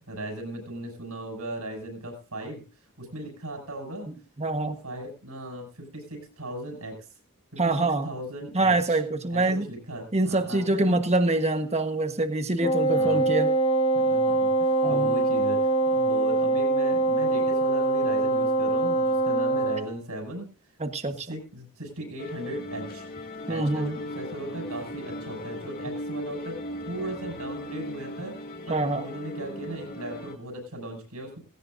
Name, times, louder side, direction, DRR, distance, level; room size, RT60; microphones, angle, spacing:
voice 1, 0.0-2.6 3.0-4.1 4.6-6.9 7.5-9.0 9.3-11.0 12.9-13.3 13.9-20.5 21.3-23.1 23.5-26.6 26.9-28.4 28.7-31.4, right 1 dB, 80° right, 2 dB, 6.1 m, -38 dB
voice 2, 4.4-4.8 7.6-8.1 8.5-9.7 10.1-13.5 14.8-15.1 20.8-21.3 23.5-24.0 28.7-29.0, right 2 dB, 30° right, 7 dB, 1.3 m, -25 dB
Wind instrument woodwind instrument, 12.6-19.9, right 2 dB, 25° left, 1.5 m, -23 dB
sound 1, 22.2-30.3, left 1 dB, 40° left, 2.4 m, -38 dB
17.5 x 17.0 x 2.6 m, 0.33 s
head